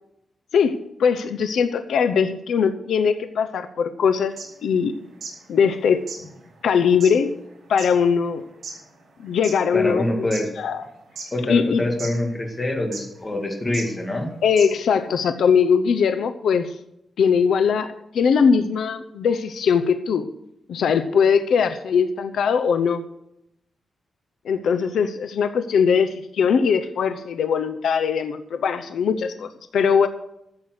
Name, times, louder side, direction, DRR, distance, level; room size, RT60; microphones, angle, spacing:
voice 1, 0.5-4.3 4.6-4.9 5.5-6.1 6.6-7.3 7.7-8.4 9.2-10.3 10.6-10.8 11.5-11.8 14.4-16.7 17.2-17.9 18.1-20.3 20.7-23.0 24.4-30.1, left 6 dB, 85° left, 9 dB, 0.8 m, -20 dB
sound 1, 4.3-5.4 5.7-5.8 6.0-9.6 10.1-10.8 11.1-11.7 12.0-12.1 12.9-13.2 13.7-13.9 14.2-14.3 14.6-14.9, right 4 dB, 60° right, 4.3 m, -37 dB
voice 2, 9.7-10.5 11.3-14.3, left 1 dB, 20° left, 1 dB, 2.3 m, -25 dB
13.5 x 7.8 x 6.5 m, 0.82 s
wide cardioid pair, 175°, 0 cm